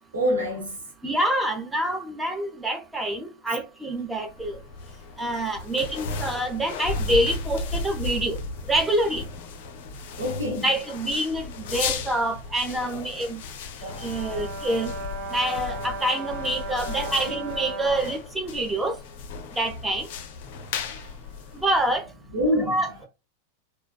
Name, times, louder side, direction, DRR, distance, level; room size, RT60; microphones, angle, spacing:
voice 1, 0.1-0.9 10.2-10.7 20.8-21.2 22.3-23.0, equal, 70° right, 1.1 m, -27 dB
voice 2, 1.0-4.5 5.2-8.4 8.7-9.2 10.6-13.4 14.0-14.9 15.3-18.9 19.6-20.1 21.5-22.0 22.7-23.1, right 1 dB, 10° right, 0.6 m, -26 dB
sound 1, 4.2-22.1, left 4 dB, 50° left, 0.5 m, -35 dB
Brass instrument, 13.8-18.2, right 2 dB, 40° right, 0.8 m, -36 dB
3.3 x 2.2 x 2.2 m
figure-of-eight pair, 90°, 0 cm